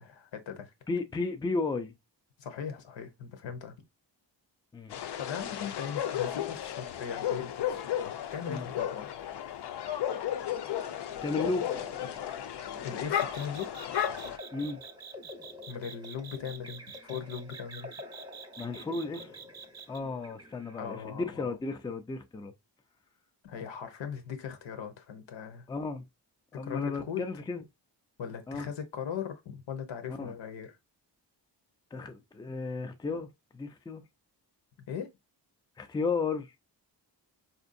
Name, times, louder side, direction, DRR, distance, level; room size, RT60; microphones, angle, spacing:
voice 1, 0.0-0.7 2.4-3.8 5.2-7.9 8.3-9.0 12.8-13.9 15.7-17.9 20.8-21.6 23.4-25.6 26.5-27.3 28.2-30.8 34.9-35.1, left 7 dB, 85° left, 0.9 m, -39 dB
voice 2, 0.9-1.9 4.7-4.9 8.5-8.7 11.2-11.7 14.5-14.8 18.6-19.3 19.9-22.5 25.7-26.0 26.5-27.6 28.5-28.7 30.1-30.3 31.9-33.3 33.5-34.0 35.8-36.5, left 3 dB, 10° left, 0.4 m, -34 dB
sound 1, 4.9-14.4, left 10 dB, 65° left, 0.6 m, -34 dB
sound 2, 10.6-21.1, left 2 dB, 10° right, 0.8 m, -49 dB
sound 3, 13.1-20.0, right 7 dB, 55° right, 0.6 m, -47 dB
4.3 x 2.6 x 2.5 m
wide cardioid pair, 115°, 43 cm